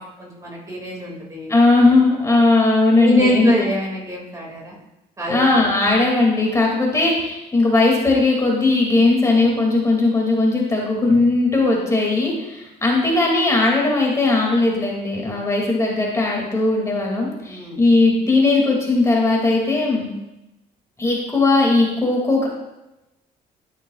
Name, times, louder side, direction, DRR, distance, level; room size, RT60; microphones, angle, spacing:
voice 1, 0.0-1.5 3.0-4.8 5.2-5.4 17.5-17.8, equal, 20° right, -2 dB, 2.3 m, -24 dB
voice 2, 1.5-3.5 5.3-20.1 21.0-22.5, left 2 dB, 20° left, -2 dB, 2.3 m, -18 dB
12.5 x 6.3 x 2.4 m, 0.93 s
cardioid pair, 110°, 17 cm